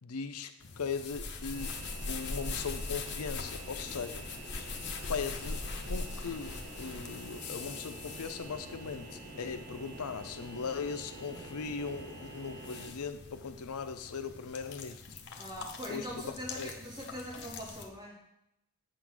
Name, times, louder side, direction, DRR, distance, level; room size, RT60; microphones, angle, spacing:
voice 1, 0.0-1.8 2.1-4.7 5.1-15.2 15.9-16.7, left 5 dB, 90° left, 9 dB, 0.6 m, -39 dB
sound 1, 0.6-17.9, left 3 dB, 50° left, 0.8 m, -42 dB
sound 2, 1.5-12.9, right 2 dB, 35° right, 3.2 m, -48 dB
voice 2, 15.4-18.2, equal, 20° right, -4 dB, 2.1 m, -42 dB
8.0 x 3.9 x 6.1 m, 0.84 s
head